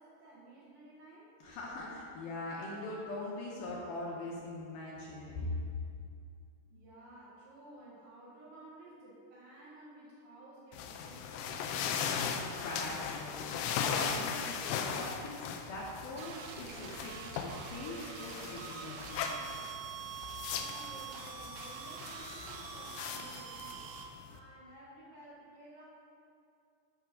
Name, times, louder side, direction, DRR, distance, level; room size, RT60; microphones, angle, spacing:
voice 1, 0.0-1.3 6.7-12.2 20.5-23.9 24.2-25.8, right 1 dB, 65° right, -6 dB, 2.7 m, -54 dB
voice 2, 1.4-5.5 12.0-19.5, left 2 dB, 75° left, -4 dB, 2.5 m, -42 dB
sound 1, 10.7-24.4, left 7 dB, 90° left, 2.8 m, -39 dB
sound 2, 16.2-24.1, right 7 dB, 80° right, 2.3 m, -45 dB
11.5 x 5.7 x 3.6 m, 2.4 s
omnidirectional pair, 5.0 m